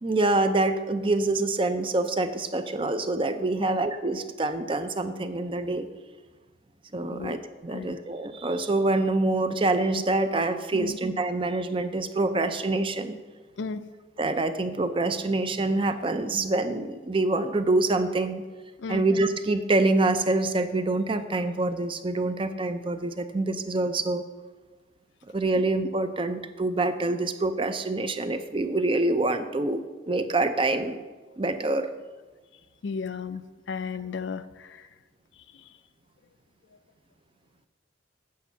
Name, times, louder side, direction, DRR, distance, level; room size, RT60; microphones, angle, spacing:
voice 1, 0.0-5.9 6.9-13.2 14.2-18.4 18.9-24.2 25.3-29.8 30.1-31.0 31.4-31.9, right 2 dB, 25° right, 9 dB, 0.5 m, -26 dB
voice 2, 32.8-34.9 35.5-35.6, left 5 dB, 65° left, 13 dB, 0.4 m, -34 dB
8.5 x 6.8 x 5.7 m, 1.3 s
head